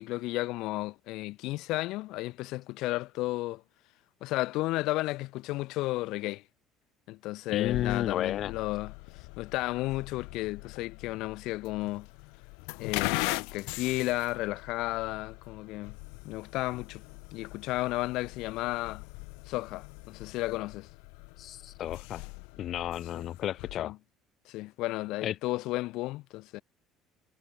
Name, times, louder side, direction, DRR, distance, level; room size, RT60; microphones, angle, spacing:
voice 1, 0.0-3.6 4.2-6.4 7.1-12.1 12.8-16.0 16.2-17.0 17.3-19.0 19.5-20.9 23.2-23.3 23.8-24.0 24.5-26.6, left 19 dB, 70° left, 2.2 m, -33 dB
voice 2, 7.5-8.5 21.4-22.2 22.6-24.0 25.2-25.3, left 11 dB, 50° left, 1.3 m, -32 dB
sound 1, 7.6-23.8, left 38 dB, 90° left, 1.8 m, -41 dB
cardioid pair, 125°, 0 cm